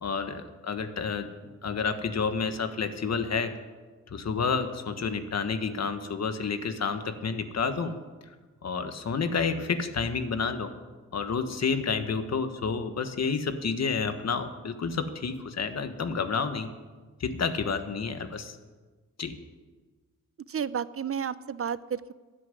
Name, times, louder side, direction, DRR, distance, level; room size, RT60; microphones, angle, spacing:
voice 1, 0.0-1.3 1.6-3.5 4.1-7.9 8.6-10.7 11.1-16.7 17.2-18.6 19.2-19.4, left 5 dB, 60° left, 9 dB, 1.4 m, -30 dB
voice 2, 20.5-22.1, right 7 dB, 50° right, 16 dB, 0.6 m, -32 dB
13.0 x 10.0 x 9.8 m, 1.3 s
cardioid pair, 85°, 30 cm